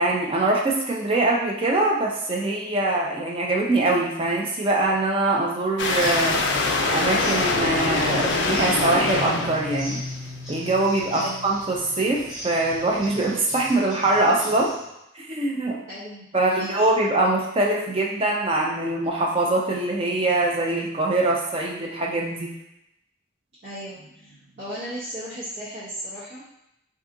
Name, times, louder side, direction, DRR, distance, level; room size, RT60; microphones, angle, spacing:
voice 1, 0.0-6.4 6.9-10.0 10.5-14.7 15.2-15.8 16.3-22.5, right 2 dB, 30° right, -2 dB, 0.4 m, -23 dB
sound 1, 5.8-13.2, left 3 dB, 60° left, 0.4 m, -26 dB
sound 2, 6.0-14.9, equal, 5° right, 0.9 m, -40 dB
voice 2, 11.1-11.5 15.9-16.9 23.6-26.6, equal, 55° right, -12 dB, 0.9 m, -36 dB
2.7 x 2.4 x 3.7 m, 0.83 s
head